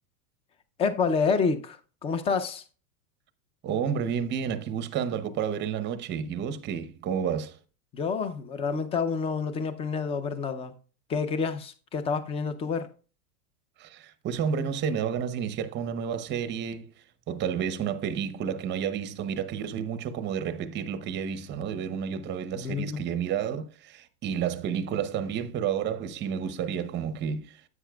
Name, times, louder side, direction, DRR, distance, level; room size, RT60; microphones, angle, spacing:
voice 1, 0.8-2.6 7.9-10.7 11.1-12.9 22.5-23.0, left 5 dB, 15° left, 0.4 m, -28 dB
voice 2, 3.6-7.6 13.8-16.9 17.3-27.6, right 7 dB, 25° right, 0.7 m, -30 dB
10.0 x 8.2 x 2.3 m
supercardioid pair, 140°, 46 cm